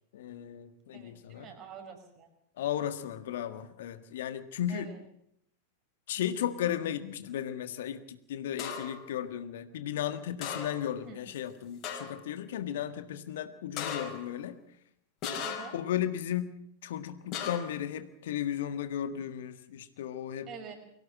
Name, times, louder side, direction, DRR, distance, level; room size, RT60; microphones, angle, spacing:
voice 1, 0.1-1.5 2.6-4.9 6.1-14.6 15.7-16.5 16.8-20.5, left 10 dB, 55° left, 10 dB, 1.7 m, -35 dB
voice 2, 0.9-2.3 4.7-5.0 11.1-11.2 15.4-15.8 20.5-20.8, right 7 dB, 35° right, 5 dB, 5.7 m, -46 dB
sound 1, 8.6-9.1 10.4-11.0 11.3-11.4 11.8-12.3 13.8-14.3 15.2-15.9 17.3-17.8, left 7 dB, 35° left, 5.7 m, -37 dB
24.5 x 17.0 x 7.6 m, 0.71 s
figure-of-eight pair, 90°, 0 cm